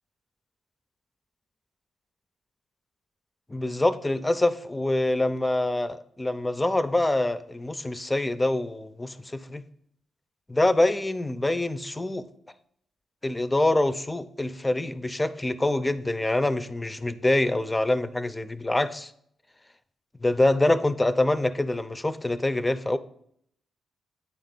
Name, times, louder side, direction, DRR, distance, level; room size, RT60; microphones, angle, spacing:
voice 1, 3.5-9.6 10.5-12.2 13.2-19.1 20.2-23.0, left 1 dB, 20° left, 13 dB, 0.5 m, -25 dB
9.0 x 3.5 x 3.9 m, 0.69 s
hypercardioid pair, 40°, 0 cm